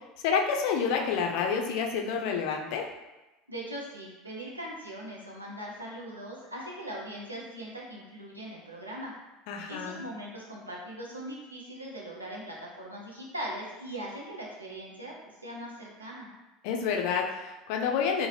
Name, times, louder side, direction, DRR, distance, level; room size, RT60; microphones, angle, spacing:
voice 1, 0.2-2.8 9.5-10.0 16.6-18.3, left 6 dB, 55° left, 2 dB, 0.4 m, -28 dB
voice 2, 3.5-9.1 9.7-15.1 15.4-16.3, right 1 dB, 85° right, -3 dB, 0.6 m, -40 dB
2.7 x 2.0 x 3.2 m, 1.0 s
figure-of-eight pair, 70°, 0 cm